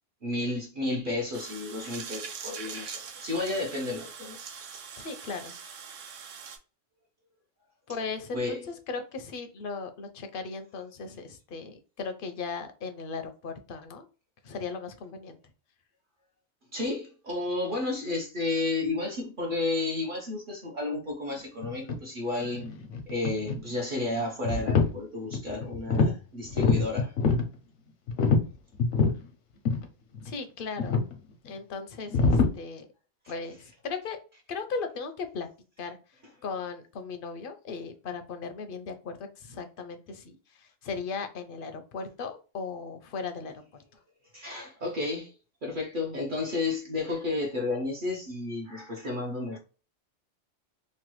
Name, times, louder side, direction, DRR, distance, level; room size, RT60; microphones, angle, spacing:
voice 1, 0.2-4.4 8.3-8.6 16.7-22.7 23.1-27.2 44.3-45.3 45.6-49.6, left 2 dB, 50° right, 0.7 m, -32 dB
sound 1, 1.3-6.6, right 6 dB, 80° right, 1.0 m, -42 dB
voice 2, 5.0-5.6 7.9-14.1 14.4-15.4 30.2-31.0 31.4-32.9 33.3-34.2 34.5-35.5 35.8-43.6, left 4 dB, 60° left, 0.6 m, -37 dB
sound 2, 21.6-22.0 22.4-23.7 24.2-24.9 25.3-26.2 26.4-27.5 28.1-29.2 29.6-29.9 30.1-30.3 30.8-31.1 32.1-32.5, left 4 dB, 85° left, 1.0 m, -25 dB
3.1 x 2.2 x 2.9 m
omnidirectional pair, 1.2 m